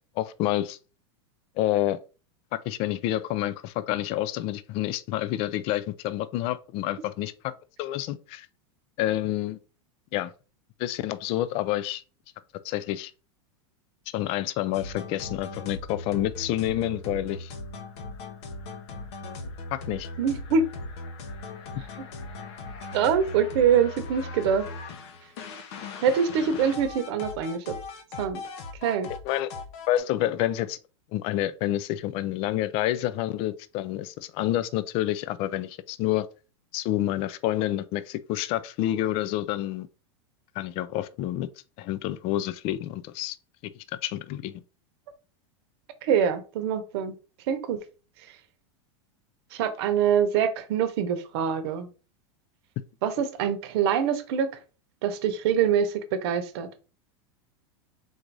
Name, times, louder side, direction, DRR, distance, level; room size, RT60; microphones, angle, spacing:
voice 1, 0.2-0.8 1.6-2.0 2.6-7.5 7.8-8.5 9.0-9.6 10.1-10.3 10.8-12.0 12.6-13.1 14.1-17.5 19.7-20.1 29.2-29.5 29.9-30.8 31.1-36.3 36.7-39.9 40.6-41.5 41.8-43.4 43.6-43.7 44.0-44.6, left 13 dB, 40° left, 0.4 m, -28 dB
sound 1, 14.7-30.0, left 3 dB, 65° left, 0.9 m, -39 dB
voice 2, 20.2-20.6 22.0-22.1 22.9-24.7 26.0-27.8 28.2-28.4 28.8-29.1 46.0-47.1 47.5-47.8 49.5-51.9 53.0-54.5 55.0-56.7, right 7 dB, 60° right, 0.8 m, -24 dB
3.9 x 2.6 x 4.6 m
supercardioid pair, 140°, 15 cm